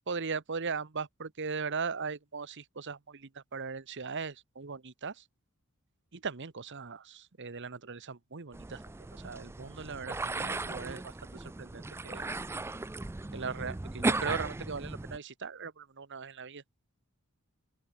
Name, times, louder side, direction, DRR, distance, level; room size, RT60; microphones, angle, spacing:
voice 1, 0.1-5.1 6.1-8.8 9.1-12.2 13.3-16.6, right 5 dB, 55° right, 1.1 m, -39 dB
sound 1, 8.5-15.2, right 2 dB, 10° right, 0.3 m, -36 dB
open air
head